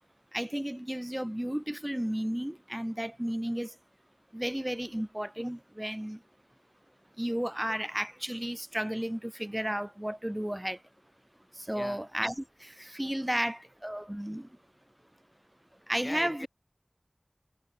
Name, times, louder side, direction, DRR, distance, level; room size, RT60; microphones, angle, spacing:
voice 1, 0.3-3.7 4.3-6.2 7.2-10.8 11.7-14.5 15.9-16.5, equal, 15° right, 0.3 m, -33 dB
voice 2, 16.0-16.5, left 2 dB, 90° left, 0.5 m, -42 dB
wide cardioid pair, 40°, 0 cm